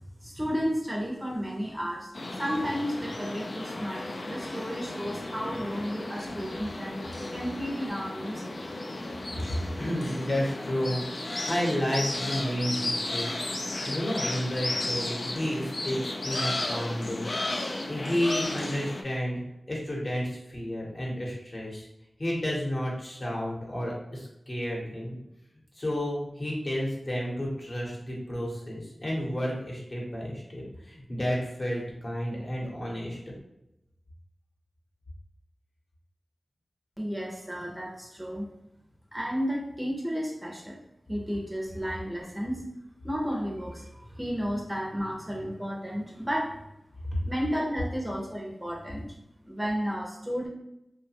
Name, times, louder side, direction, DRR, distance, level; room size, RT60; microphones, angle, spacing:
voice 1, 0.2-7.0 7.3-8.7 37.0-38.5 39.1-40.8 41.1-42.7 43.0-46.6 47.2-49.1 49.4-50.5, equal, 10° right, -2 dB, 0.6 m, -33 dB
sound 1, 2.1-19.0, left 2 dB, 60° left, 0.3 m, -34 dB
voice 2, 9.8-11.0 11.4-13.3 13.8-17.3 17.9-19.3 19.7-21.9 22.2-25.2 25.8-33.2, equal, 45° left, -3 dB, 0.9 m, -31 dB
2.7 x 2.2 x 2.8 m, 0.86 s
wide cardioid pair, 55°, 0 cm